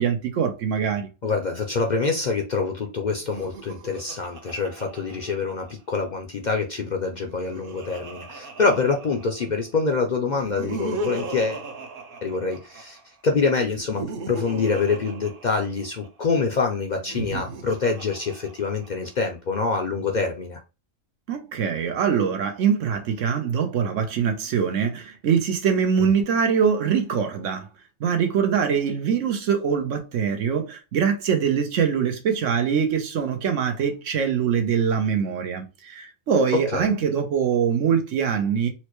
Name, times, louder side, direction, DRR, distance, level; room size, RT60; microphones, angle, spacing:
voice 1, 0.0-1.1 21.3-27.7 28.0-38.7, right 7 dB, 80° right, 1.1 m, -23 dB
voice 2, 1.2-11.6 12.2-13.0 13.2-20.6 26.0-26.1 36.5-36.9, left 4 dB, 55° left, 0.5 m, -25 dB
Laughter, 3.2-6.0 7.0-9.6 10.3-13.0 13.7-16.1 16.9-19.1, right 2 dB, 55° right, 0.7 m, -37 dB
4.4 x 2.1 x 3.0 m
omnidirectional pair, 1.3 m